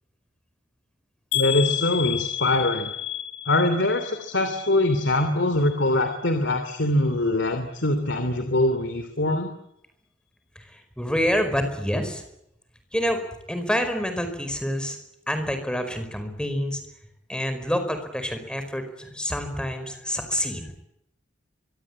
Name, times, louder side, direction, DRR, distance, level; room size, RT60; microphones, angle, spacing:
sound 1, 1.3-5.3 5.6-6.2 6.7-6.8 7.1-7.2, left 11 dB, 85° left, 3.4 m, -31 dB
voice 1, 1.3-2.9 3.5-9.5, left 1 dB, 70° left, 8 dB, 3.0 m, -23 dB
voice 2, 10.5-12.2 12.9-13.2 13.5-15.0 15.3-16.8 17.3-20.7, equal, 5° left, 8 dB, 5.0 m, -27 dB
25.0 x 23.0 x 8.8 m, 0.78 s
head